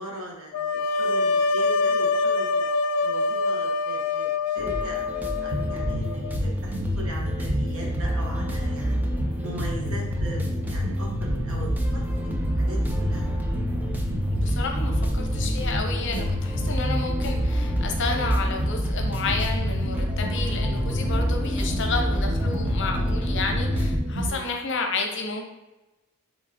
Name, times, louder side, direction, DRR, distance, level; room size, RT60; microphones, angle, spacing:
voice 1, 0.0-2.7 3.0-5.0 5.4-9.1 9.4-11.7 11.9-13.3 24.2-24.5, right 1 dB, 70° right, -1 dB, 1.2 m, -39 dB
sound 1, 0.5-6.4, left 3 dB, 80° left, 0.3 m, -25 dB
sound 2, 4.6-24.0, equal, 10° right, 0.3 m, -31 dB
sound 3, 5.5-24.3, equal, 55° right, 0.7 m, -28 dB
voice 2, 14.3-25.4, left 4 dB, 55° left, 3 dB, 0.7 m, -31 dB
4.8 x 3.8 x 2.9 m, 1.1 s
head